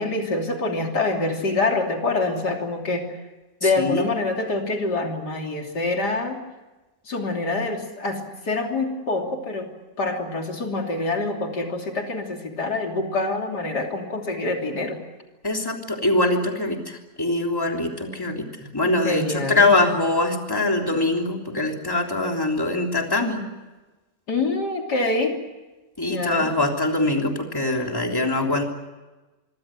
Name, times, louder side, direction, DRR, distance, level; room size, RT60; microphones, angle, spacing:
voice 1, 0.0-3.2 3.6-6.4 7.1-9.7 10.0-15.0 19.0-19.7 24.3-25.4 26.1-26.5, left 2 dB, 85° left, 2 dB, 3.7 m, -26 dB
voice 2, 3.6-4.1 15.4-18.4 18.7-23.4 26.0-28.6, left 2 dB, 15° left, 2 dB, 3.3 m, -23 dB
25.5 x 25.0 x 7.6 m, 1.1 s
omnidirectional pair, 1.7 m